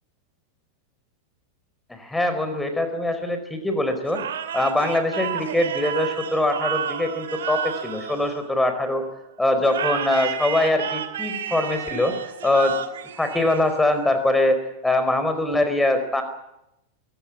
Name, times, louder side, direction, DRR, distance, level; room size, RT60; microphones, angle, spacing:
voice 1, 1.9-4.2 4.5-9.1 9.4-12.8 13.1-16.2, left 1 dB, 5° left, 8 dB, 4.7 m, -23 dB
sound 1, 4.1-8.9 9.7-14.1, right 8 dB, 65° right, 2.5 m, -31 dB
23.0 x 17.0 x 9.7 m, 0.84 s
figure-of-eight pair, 90°, 0 cm